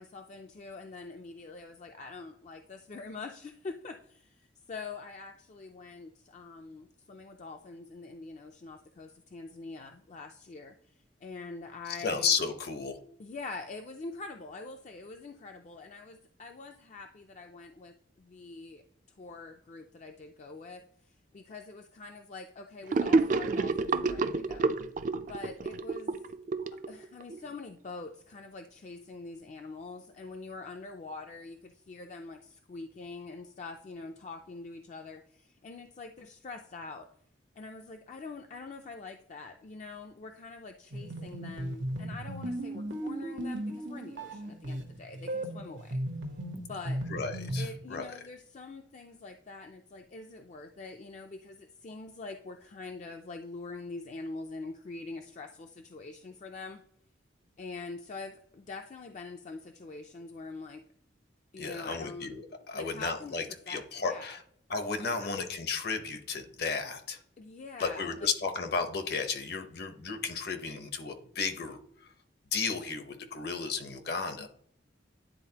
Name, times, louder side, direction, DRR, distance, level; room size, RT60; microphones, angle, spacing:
voice 1, 0.0-12.3 13.2-18.8 19.2-24.7 25.2-26.2 26.9-37.1 37.6-46.0 46.6-47.0 47.6-56.8 57.6-60.8 61.5-62.4 62.7-64.4 65.0-65.3 67.4-68.3 74.4-74.5, left 3 dB, 40° left, 5 dB, 0.4 m, -44 dB
voice 2, 11.9-13.0 47.1-48.2 61.6-64.4 64.7-67.2 67.8-72.1 72.5-74.5, left 5 dB, 60° left, 8 dB, 0.8 m, -33 dB
Gurgling / Sink (filling or washing), 22.9-27.4, right 3 dB, 45° right, 0.3 m, -29 dB
sound 1, 40.9-47.8, right 1 dB, 85° right, 1.0 m, -36 dB
10.0 x 3.8 x 2.8 m, 0.67 s
head